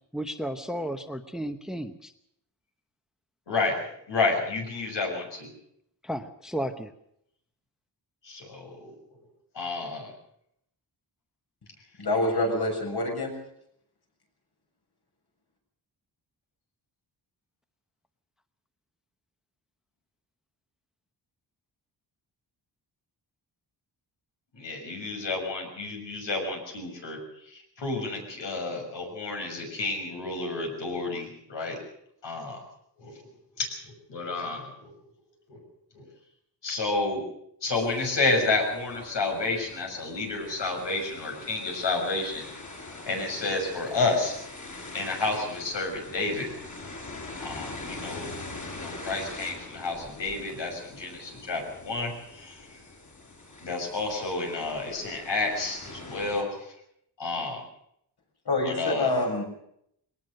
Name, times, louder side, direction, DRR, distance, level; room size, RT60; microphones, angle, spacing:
voice 1, 0.1-2.1 6.0-6.9, equal, ahead, 9 dB, 0.9 m, -33 dB
voice 2, 3.5-3.8 4.1-5.5 8.2-8.9 9.5-10.1 24.5-31.8 32.2-32.6 33.0-33.3 33.6-34.9 35.5-35.6 35.9-36.1 36.6-37.2 37.6-42.5 43.1-44.3 44.9-46.5 47.4-48.3 48.7-52.8 53.6-56.7 57.2-57.6 58.6-59.1, left 3 dB, 80° left, 2 dB, 6.5 m, -30 dB
voice 3, 12.0-13.3 58.4-59.4, left 2 dB, 65° left, 2 dB, 7.0 m, -26 dB
sound 1, 37.7-56.4, left 2 dB, 45° left, 5.6 m, -43 dB
21.5 x 19.0 x 6.5 m, 0.72 s
wide cardioid pair, 145°, 42 cm